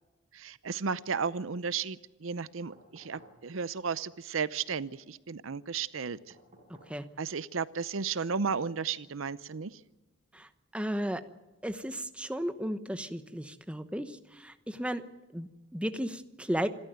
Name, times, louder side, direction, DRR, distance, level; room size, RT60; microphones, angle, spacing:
voice 1, 0.3-6.2 7.2-9.7, right 5 dB, 80° right, 17 dB, 0.7 m, -34 dB
sound 1, 2.7-3.4 6.3-7.0 8.6-8.7, right 1 dB, 30° right, 5.7 m, -56 dB
voice 2, 10.3-11.2 11.6-15.0 15.3-16.7, equal, 5° right, 9 dB, 1.0 m, -34 dB
26.5 x 13.0 x 9.2 m, 1.1 s
head